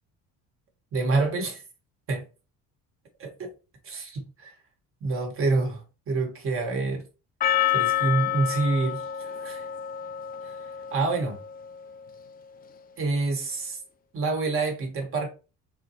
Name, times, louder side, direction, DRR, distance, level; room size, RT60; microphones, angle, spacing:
voice 1, 0.9-1.6 2.1-2.2 3.2-3.5 3.8-4.5 5.0-7.0 7.7-9.6 10.4-10.6 10.9-11.4 13.0-13.8 14.1-15.3, right 3 dB, 45° right, 1.5 m, -27 dB
Percussion, 7.4-11.7, left 11 dB, 30° left, 0.4 m, -28 dB
4.1 x 3.9 x 2.8 m
cardioid pair, 140°, 32 cm